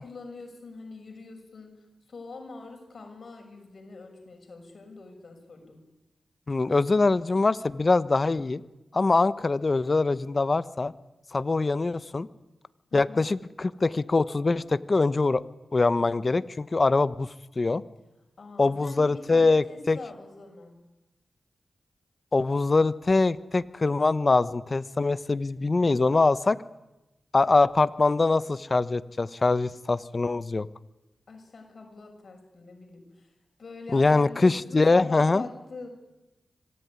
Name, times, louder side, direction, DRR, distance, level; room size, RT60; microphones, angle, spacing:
voice 1, 0.0-5.8 12.9-13.3 18.4-20.8 31.3-33.3 33.6-35.9, left 3 dB, 65° left, 3 dB, 6.5 m, -44 dB
voice 2, 6.5-8.6 8.9-10.9 11.3-12.3 12.9-15.4 15.7-17.3 17.6-17.8 18.6-20.0 22.3-26.6 27.3-30.7 33.9-35.5, left 3 dB, 45° left, 15 dB, 1.1 m, -23 dB
25.5 x 18.5 x 9.8 m, 1.0 s
cardioid pair, 50°, 0 cm